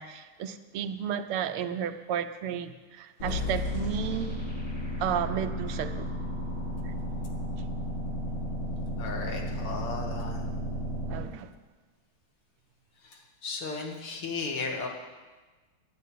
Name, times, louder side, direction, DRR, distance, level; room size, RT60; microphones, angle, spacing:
voice 1, 0.0-4.4 5.0-6.1 6.8-6.9 11.1-11.5, right 8 dB, 85° right, 9 dB, 1.6 m, -33 dB
sound 1, 3.2-11.2, left 1 dB, 55° left, 6.2 m, -33 dB
voice 2, 9.0-10.4 13.4-14.9, left 4 dB, 85° left, 1 dB, 2.7 m, -35 dB
10.5 x 8.7 x 9.2 m, 1.3 s
omnidirectional pair, 2.4 m